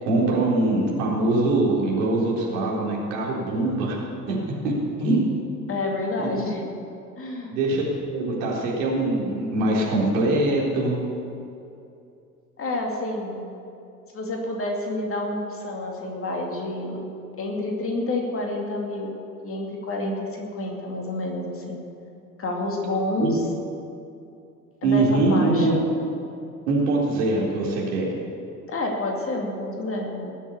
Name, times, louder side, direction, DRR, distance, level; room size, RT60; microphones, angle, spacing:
voice 1, 0.0-4.0 4.3-4.4 4.6-5.2 6.2-6.3 7.5-11.0 23.2-23.3 24.8-25.8 26.7-28.1, right 2 dB, 60° right, -4 dB, 3.8 m, -23 dB
voice 2, 5.7-6.6 7.2-7.6 12.6-13.5 14.1-17.1 17.4-19.1 19.4-21.8 22.4-23.4 24.8-25.8 28.7-30.3, left 2 dB, 30° left, 0 dB, 2.6 m, -29 dB
19.0 x 7.3 x 6.8 m, 2.6 s
figure-of-eight pair, 70°, 44 cm